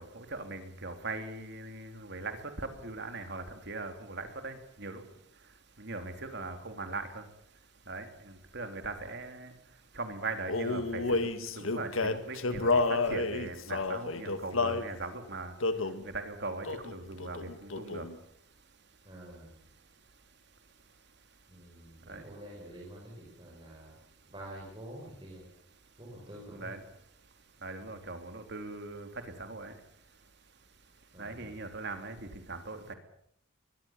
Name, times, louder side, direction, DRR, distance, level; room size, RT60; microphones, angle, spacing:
voice 1, 0.0-5.0 5.8-7.2 7.9-9.5 9.9-15.5 16.0-18.1 22.1-22.2 26.5-26.8 27.6-29.1 29.4-29.7 31.2-32.9, right 3 dB, 55° right, 7 dB, 3.3 m, -40 dB
Male singing, 10.5-14.9 15.6-16.0 16.6-16.9 17.2-18.1, left 3 dB, 80° left, 1.8 m, -30 dB
voice 2, 19.0-19.6 21.5-24.0 24.3-25.5 26.0-26.8 27.8-28.0 31.1-31.5, right 1 dB, 25° right, -3 dB, 6.1 m, -48 dB
23.5 x 20.0 x 7.4 m, 0.69 s
head